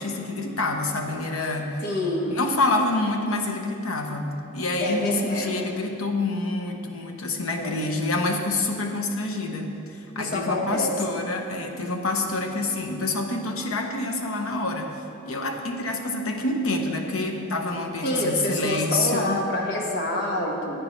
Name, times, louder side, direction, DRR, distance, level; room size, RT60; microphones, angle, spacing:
voice 1, 0.0-1.7 2.4-4.3 4.5-15.0 15.2-19.5, left 2 dB, 85° left, 3 dB, 1.0 m, -27 dB
voice 2, 1.8-2.4 4.8-5.5 7.5-7.9 10.2-11.0 18.0-20.8, left 1 dB, 55° left, -1 dB, 1.5 m, -27 dB
15.5 x 9.3 x 3.3 m, 2.6 s
head